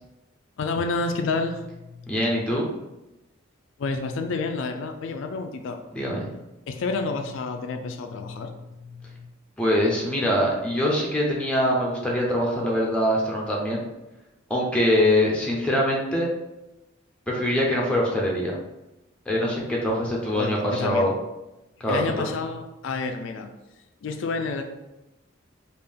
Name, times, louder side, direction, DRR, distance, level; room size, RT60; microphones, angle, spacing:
voice 1, 0.6-2.2 3.8-5.8 6.7-9.3 20.3-21.1 21.9-23.5 24.0-24.6, left 3 dB, 60° left, 5 dB, 0.3 m, -30 dB
voice 2, 2.1-2.7 5.9-6.3 9.6-13.8 14.5-16.3 17.3-18.6 19.3-21.1 21.8-22.1, left 1 dB, 5° left, -3 dB, 0.6 m, -23 dB
3.5 x 2.4 x 3.4 m, 0.97 s
head